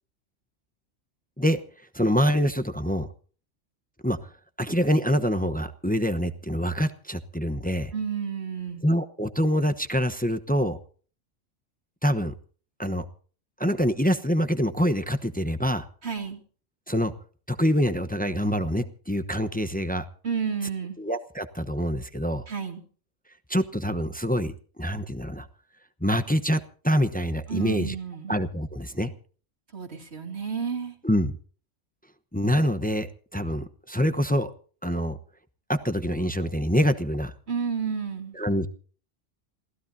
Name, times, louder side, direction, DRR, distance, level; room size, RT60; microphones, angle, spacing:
voice 1, 1.9-3.1 4.0-4.2 4.6-7.9 8.8-10.8 12.0-12.3 12.8-13.0 13.6-15.9 16.9-17.1 17.5-20.1 21.0-22.4 23.5-25.5 26.0-27.9 28.3-29.1 31.0-31.3 32.3-34.5 34.8-35.2 35.7-37.3 38.3-38.7, equal, 10° left, 9 dB, 0.8 m, -25 dB
voice 2, 7.9-8.8 16.0-16.4 20.2-21.0 22.5-22.8 27.5-28.4 29.7-30.9 37.5-38.4, right 6 dB, 55° right, 2 dB, 2.9 m, -31 dB
27.5 x 16.0 x 2.7 m, 0.42 s
omnidirectional pair, 1.3 m